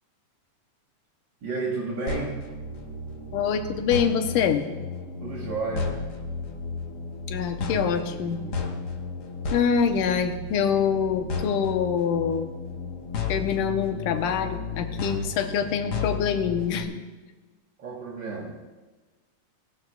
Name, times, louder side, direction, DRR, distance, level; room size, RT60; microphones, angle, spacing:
voice 1, 1.4-2.5 5.2-6.0 17.8-18.6, right 3 dB, 55° right, -3 dB, 1.3 m, -32 dB
sound 1, 2.1-16.8, left 4 dB, 70° left, 0.9 m, -33 dB
voice 2, 3.3-4.7 7.3-8.4 9.5-12.5 13.3-17.0, left 7 dB, 90° left, 6 dB, 2.4 m, -25 dB
17.5 x 12.5 x 2.3 m, 1.2 s
omnidirectional pair, 3.7 m